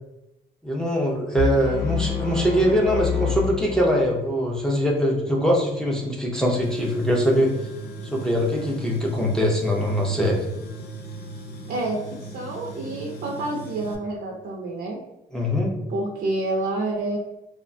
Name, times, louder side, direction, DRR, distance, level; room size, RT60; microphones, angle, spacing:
voice 1, 0.6-7.5 8.0-10.4 15.3-15.7, equal, 5° left, -2 dB, 0.4 m, -22 dB
sound 1, 1.3-4.3, left 7 dB, 80° left, 0.9 m, -28 dB
Tools, 6.6-14.0, right 3 dB, 60° left, 0.4 m, -37 dB
voice 2, 11.7-15.0 15.9-17.2, right 2 dB, 55° right, -2 dB, 0.4 m, -28 dB
2.7 x 2.1 x 2.5 m, 0.91 s
cardioid pair, 135°, 19 cm